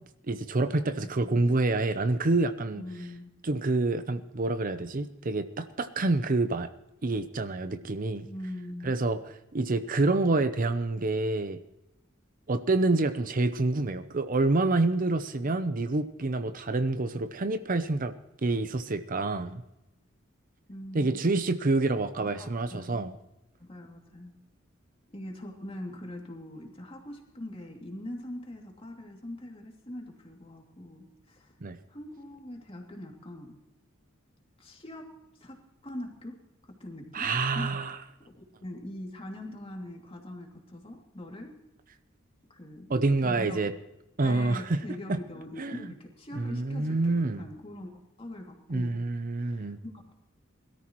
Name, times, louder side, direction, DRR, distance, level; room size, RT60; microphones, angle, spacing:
voice 1, 0.3-2.8 3.4-6.7 7.0-8.3 8.8-9.2 9.5-11.6 12.5-18.1 18.4-19.6 20.9-23.1 31.6-31.8 37.1-38.0 42.9-43.7 44.2-44.8 45.6-45.9 46.3-47.4 48.7-49.8, right 2 dB, 45° right, 11 dB, 0.7 m, -27 dB
voice 2, 0.8-1.4 2.8-3.3 8.2-9.0 20.7-21.2 22.1-23.0 23.6-24.3 25.1-31.5 31.9-33.5 34.6-35.1 35.4-36.4 36.7-37.8 38.3-41.5 42.5-42.9 43.2-43.7 44.2-49.0 49.4-50.1, left 1 dB, 30° left, 1 dB, 2.7 m, -42 dB
21.5 x 13.5 x 3.1 m, 0.91 s
head